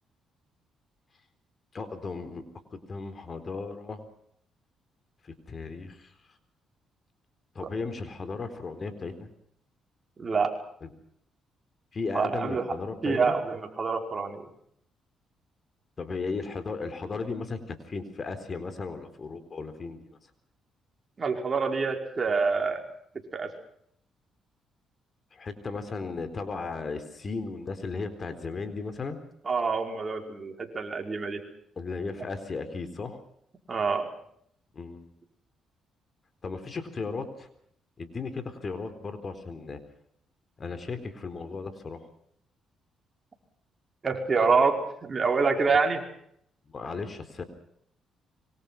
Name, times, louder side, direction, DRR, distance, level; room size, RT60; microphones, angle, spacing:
voice 1, 1.7-2.4 2.7-4.0 5.2-6.1 7.5-9.3 10.8-10.9 11.9-13.3 16.0-20.1 25.3-29.2 31.8-33.2 34.7-35.1 36.4-37.5 38.0-39.8 40.6-42.0 46.7-47.4, left 4 dB, 40° left, 10 dB, 4.1 m, -35 dB
voice 2, 10.2-10.6 12.1-12.8 13.0-14.5 21.2-22.8 23.3-23.5 29.4-31.4 33.7-34.1 44.0-46.0, right 4 dB, 35° right, 3 dB, 5.2 m, -26 dB
26.0 x 24.5 x 6.0 m, 0.69 s
cardioid pair, 90°, 0 cm